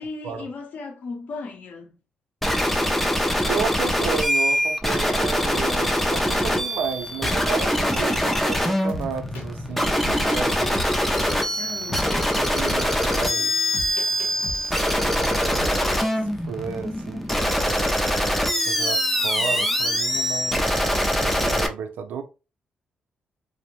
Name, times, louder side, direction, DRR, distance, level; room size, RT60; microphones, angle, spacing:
voice 1, 0.0-2.0 11.6-12.1, left 3 dB, 55° left, 0.7 m, -36 dB
sound 1, 2.4-21.7, equal, 5° left, 0.4 m, -23 dB
voice 2, 3.4-10.8 12.3-13.8 15.0-16.1 16.4-18.0 18.7-20.8 21.2-22.2, right 6 dB, 80° right, 0.5 m, -32 dB
sound 2, 8.9-9.5 9.8-11.3 11.9-12.2 12.7-15.3 15.6-15.9, left 1 dB, 80° left, 1.0 m, -36 dB
2.5 x 2.0 x 2.9 m
cardioid pair, 130°, 3 cm